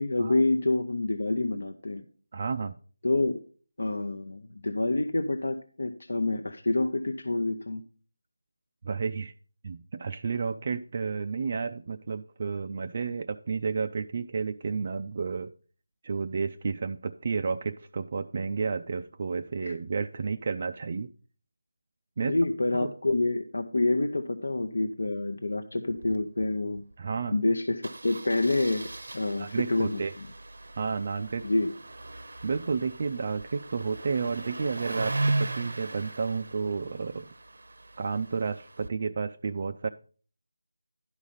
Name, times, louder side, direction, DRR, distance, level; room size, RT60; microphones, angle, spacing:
voice 1, 0.0-2.0 3.0-3.4 3.8-7.8 19.6-19.7 22.2-26.8 27.3-28.9 29.1-30.0 31.4-31.7, left 2 dB, 75° left, 6 dB, 0.8 m, -27 dB
voice 2, 2.3-2.7 8.8-9.3 9.6-15.5 16.0-21.1 22.2-22.4 22.7-22.9 27.0-27.4 29.4-30.1 30.8-31.4 32.4-37.3 38.0-39.9, right 5 dB, 30° right, 7 dB, 0.3 m, -31 dB
Engine starting, 25.9-26.2 26.4-26.5 26.8-26.9 27.8-38.9, right 2 dB, 65° right, 0.7 m, -37 dB
11.5 x 4.9 x 5.3 m, 0.41 s
figure-of-eight pair, 175°, 0 cm